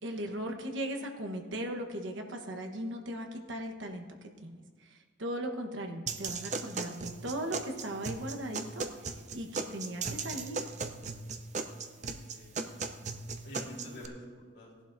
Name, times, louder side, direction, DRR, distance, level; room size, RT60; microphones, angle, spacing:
voice 1, 0.0-10.7, right 1 dB, 75° right, 4 dB, 1.2 m, -38 dB
sound 1, 6.1-14.1, right 4 dB, 40° right, 0.6 m, -38 dB
voice 2, 11.9-13.0 13.4-14.7, equal, 55° left, -4 dB, 3.8 m, -48 dB
18.0 x 11.0 x 2.6 m, 1.6 s
head